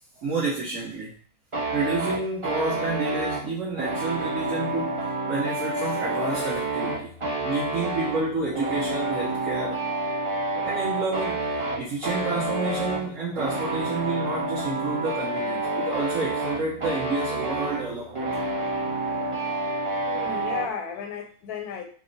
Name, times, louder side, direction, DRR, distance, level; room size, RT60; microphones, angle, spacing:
voice 1, 0.2-1.2 1.7-7.1 7.4-9.8 10.6-11.5 11.8-18.5, right 3 dB, 60° right, -6 dB, 1.1 m, -30 dB
sound 1, 1.5-20.7, right 2 dB, 25° right, 0.7 m, -29 dB
voice 2, 20.0-21.8, left 6 dB, 85° left, 4 dB, 1.1 m, -34 dB
3.0 x 2.2 x 3.8 m, 0.43 s
omnidirectional pair, 1.6 m